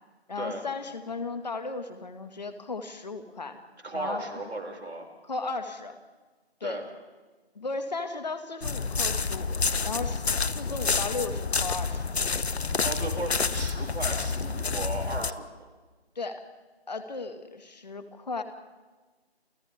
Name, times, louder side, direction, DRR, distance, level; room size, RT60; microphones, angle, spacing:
voice 1, 0.3-3.6 3.9-4.2 5.2-6.0 6.6-6.8 7.6-12.2 16.2-16.4 16.9-18.4, left 3 dB, 40° left, 7 dB, 2.2 m, -35 dB
voice 2, 3.8-5.1 6.6-6.8 12.8-15.5, right 2 dB, 80° right, 1 dB, 6.8 m, -35 dB
sound 1, 8.6-15.3, left 4 dB, 75° left, 1.1 m, -28 dB
29.5 x 29.0 x 3.7 m, 1.3 s
figure-of-eight pair, 165°, 32 cm